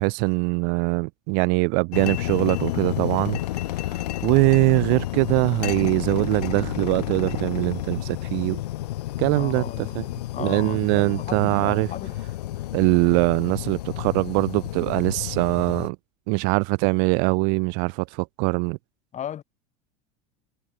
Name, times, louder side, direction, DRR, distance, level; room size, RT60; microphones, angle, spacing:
voice 1, 0.0-3.4 3.8-8.6 9.2-9.6 10.0-10.1 10.4-11.9 12.7-16.0 16.3-18.8, right 40 dB or more, 60° right, 0.4 m, -22 dB
sound 1, 1.9-15.9, left 15 dB, 90° left, 1.3 m, -31 dB
voice 2, 9.3-10.1 10.3-12.2 19.1-19.4, left 10 dB, 35° left, 5.9 m, -35 dB
supercardioid pair, 115°, 20 cm